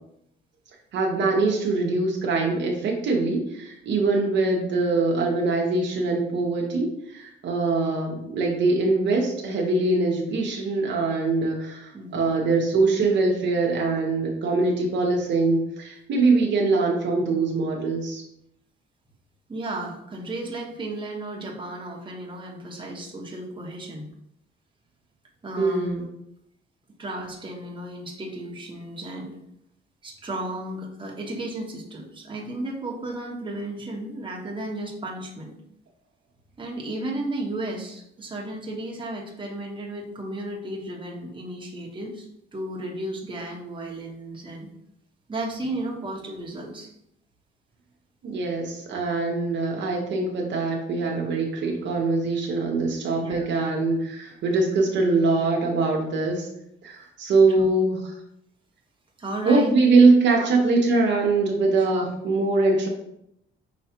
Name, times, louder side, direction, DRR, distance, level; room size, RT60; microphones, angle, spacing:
voice 1, 0.9-18.2 25.6-26.1 48.2-56.5 56.8-58.0 59.4-62.9, right 3 dB, 65° right, 0 dB, 1.0 m, -23 dB
voice 2, 11.9-12.4 19.5-24.1 25.4-26.0 27.0-29.3 30.0-35.5 36.6-42.3 42.5-44.7 45.3-46.9 53.2-53.5 59.2-59.7 60.4-60.5 61.9-62.0, right 1 dB, 25° right, -1 dB, 1.1 m, -34 dB
5.8 x 3.1 x 2.8 m, 0.76 s
cardioid pair, 90°, 20 cm